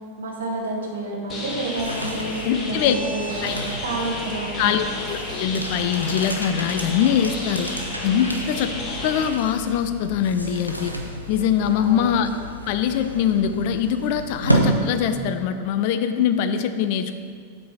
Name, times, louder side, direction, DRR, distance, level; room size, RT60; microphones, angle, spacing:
voice 1, 0.2-4.8 11.8-12.1, right 2 dB, 65° right, 0 dB, 1.4 m, -29 dB
sound 1, 1.3-9.3, left 2 dB, 25° left, 1.4 m, -32 dB
sound 2, 1.5-15.6, right 1 dB, 90° left, 0.8 m, -31 dB
voice 2, 2.4-2.9 3.4-3.5 4.6-7.7 8.0-8.7 9.0-10.9 11.3-12.3 12.7-17.2, left 8 dB, 45° left, 10 dB, 0.4 m, -23 dB
8.4 x 4.1 x 5.8 m, 2.1 s
figure-of-eight pair, 90°, 0 cm